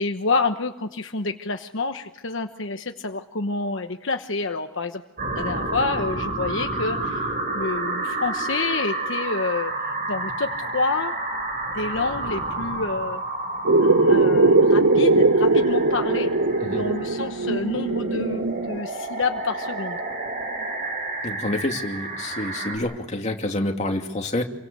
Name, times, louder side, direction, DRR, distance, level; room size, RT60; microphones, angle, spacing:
voice 1, 0.0-5.0 5.3-9.7 10.1-11.1 11.7-13.2 13.8-16.3 16.7-20.0, left 3 dB, 65° left, 6 dB, 1.2 m, -28 dB
sound 1, 5.2-22.8, right 2 dB, 45° right, 8.0 m, -30 dB
sound 2, 13.6-18.8, right 2 dB, 70° right, 0.9 m, -19 dB
voice 2, 21.2-24.4, left 1 dB, 35° left, 3 dB, 2.6 m, -28 dB
28.5 x 24.5 x 6.9 m, 0.93 s
head